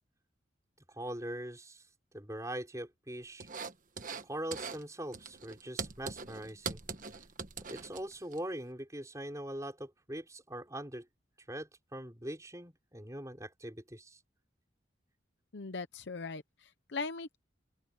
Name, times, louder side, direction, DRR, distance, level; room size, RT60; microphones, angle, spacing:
voice 1, 1.0-1.8 2.1-3.5 4.2-6.8 7.7-11.1 11.5-14.2, right 1 dB, 15° right, 5.6 m, -42 dB
sound 1, 3.4-4.2 4.5-4.8 5.1-8.4, right 5 dB, 45° right, 1.4 m, -41 dB
voice 2, 15.5-17.4, left 4 dB, 70° left, 0.8 m, -40 dB
open air
head